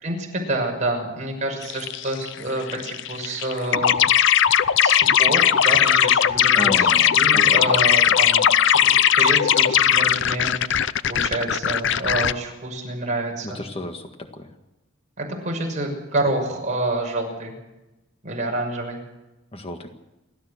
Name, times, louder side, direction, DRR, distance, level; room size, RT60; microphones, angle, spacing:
voice 1, 0.0-4.0 4.8-6.9 7.1-8.5 8.7-10.8 11.1-13.6 15.2-17.5 18.2-19.0, right 2 dB, 40° right, 0 dB, 6.3 m, -28 dB
sound 1, 1.7-2.4 2.7-12.3, left 9 dB, 65° left, 0.6 m, -18 dB
voice 2, 6.5-7.8 13.4-14.5 19.5-19.9, left 1 dB, 30° left, 5 dB, 1.7 m, -33 dB
30.0 x 13.0 x 6.6 m, 0.98 s
head